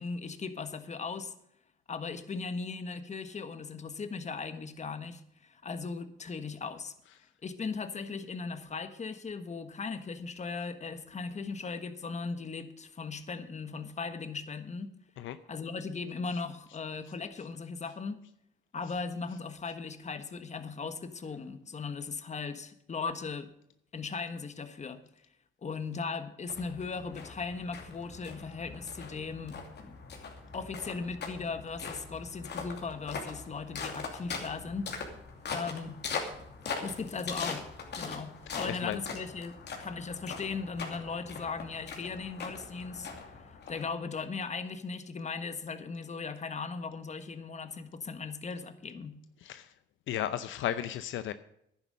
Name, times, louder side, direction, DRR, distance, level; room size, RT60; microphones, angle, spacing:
voice 1, 0.0-1.3 1.9-6.9 7.4-14.9 15.5-18.2 18.7-23.5 23.9-25.0 25.6-30.0 30.5-34.9 35.5-36.0 36.8-37.7 37.9-43.1 43.7-49.2, left 4 dB, 35° left, 10 dB, 1.4 m, -38 dB
sound 1, 26.5-44.2, left 5 dB, 60° left, 2.7 m, -41 dB
voice 2, 38.6-39.0 49.4-49.7 50.1-51.3, left 11 dB, 75° left, 12 dB, 0.7 m, -34 dB
11.0 x 9.9 x 6.5 m, 0.74 s
cardioid pair, 90°, 20 cm